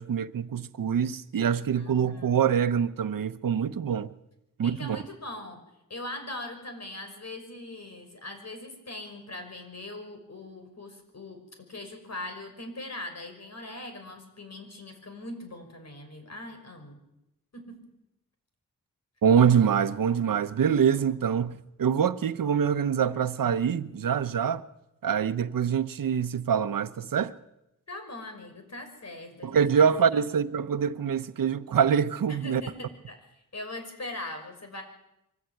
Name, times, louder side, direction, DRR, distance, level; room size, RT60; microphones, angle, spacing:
voice 1, 0.0-4.1 4.6-5.0 19.2-24.6 25.0-27.3 29.4-32.6, right 7 dB, 85° right, 1.0 m, -25 dB
voice 2, 1.7-2.4 4.6-5.6 5.9-11.4 11.7-17.0 17.5-17.9 27.9-30.2 32.3-34.8, left 2 dB, 55° left, 5.8 m, -41 dB
24.0 x 14.5 x 9.3 m
cardioid pair, 75°, 33 cm